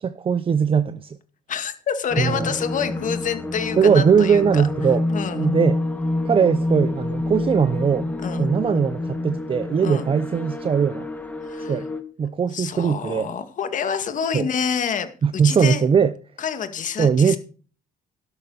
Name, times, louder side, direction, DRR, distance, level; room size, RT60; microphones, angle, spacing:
voice 1, 0.0-1.2 2.2-2.5 3.8-5.0 5.4-5.8 6.2-11.1 11.7-11.9 12.2-13.3 14.3-14.5 15.2-16.1 17.0-17.4, right 6 dB, 30° right, 0.7 m, -20 dB
voice 2, 1.5-4.7 5.1-5.5 8.2-8.5 9.8-10.1 11.4-11.8 12.5-15.8 16.4-17.4, left 7 dB, 50° left, 2.1 m, -27 dB
sound 1, 2.1-12.0, left 2 dB, 10° left, 1.9 m, -27 dB
12.0 x 11.5 x 4.1 m
cardioid pair, 110°, 17 cm